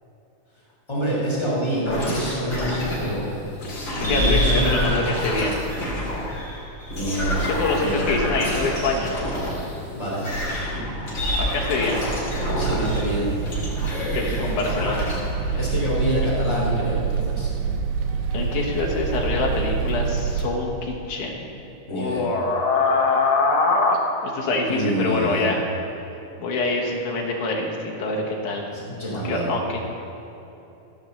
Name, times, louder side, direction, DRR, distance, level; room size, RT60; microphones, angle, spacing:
voice 1, 0.9-3.5 3.9-5.1 6.9-8.0 9.9-10.6 11.8-11.9 12.6-13.3 15.6-17.5 21.9-22.2 24.7-25.5 28.7-29.5, equal, 10° left, -6 dB, 2.5 m, -26 dB
sound 1, 1.9-3.2 3.6-9.7 10.1-13.1 13.5-15.2, left 1 dB, 40° left, 3.0 m, -27 dB
voice 2, 3.6-5.6 7.4-9.3 11.4-12.0 13.8-15.6 18.3-21.6 21.9-25.6 26.4-28.7 29.2-30.0, left 3 dB, 70° left, -1 dB, 2.7 m, -25 dB
sound 2, 12.3-20.5, right 5 dB, 75° right, 1.9 m, -26 dB
15.5 x 5.3 x 6.9 m, 3.0 s
omnidirectional pair, 3.7 m